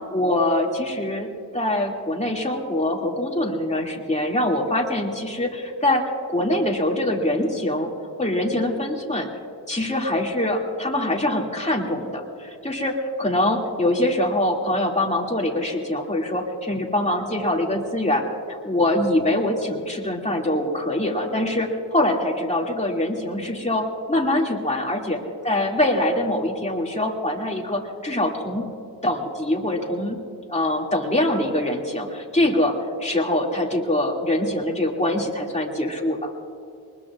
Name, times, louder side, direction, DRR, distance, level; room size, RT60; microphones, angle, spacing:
voice 1, 0.1-7.9 8.2-9.3 9.7-18.2 18.5-25.2 25.4-28.6 29.0-30.2 30.5-36.3, left 1 dB, 15° left, -1 dB, 2.4 m, -24 dB
23.5 x 20.5 x 2.5 m, 2.4 s
wide cardioid pair, 70°, 39 cm